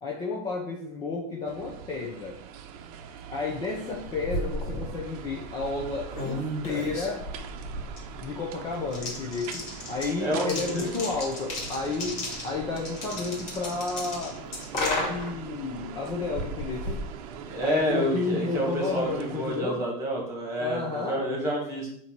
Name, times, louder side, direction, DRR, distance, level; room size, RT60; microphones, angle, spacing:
voice 1, 0.0-2.4 3.3-7.3 8.2-14.4 14.7-17.1 17.6-19.8 20.6-21.2, left 3 dB, 20° left, -1 dB, 0.8 m, -32 dB
sound 1, 1.4-19.6, right 8 dB, 60° right, 0.7 m, -42 dB
sound 2, 3.8-17.9, left 1 dB, 35° left, 2.3 m, -35 dB
voice 2, 10.2-10.9 17.4-21.9, equal, 15° right, -2 dB, 2.3 m, -29 dB
7.5 x 3.0 x 6.0 m, 0.69 s
supercardioid pair, 165°, 21 cm